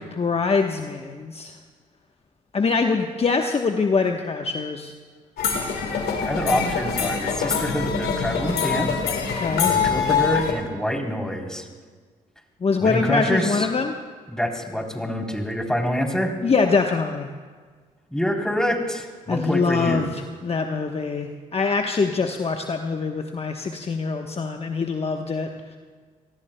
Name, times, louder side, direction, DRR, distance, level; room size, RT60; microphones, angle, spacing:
voice 1, 0.0-1.6 2.5-4.9 9.4-9.7 12.6-13.9 16.4-17.3 19.3-25.5, left 4 dB, 35° left, 4 dB, 1.1 m, -24 dB
sound 1, 5.4-10.5, left 6 dB, 65° left, 2.3 m, -24 dB
voice 2, 6.2-9.0 9.6-11.6 12.8-13.7 14.3-16.3 18.1-20.1, equal, 5° left, 1 dB, 3.5 m, -26 dB
28.0 x 18.5 x 2.3 m, 1.5 s
hypercardioid pair, 45°, 17 cm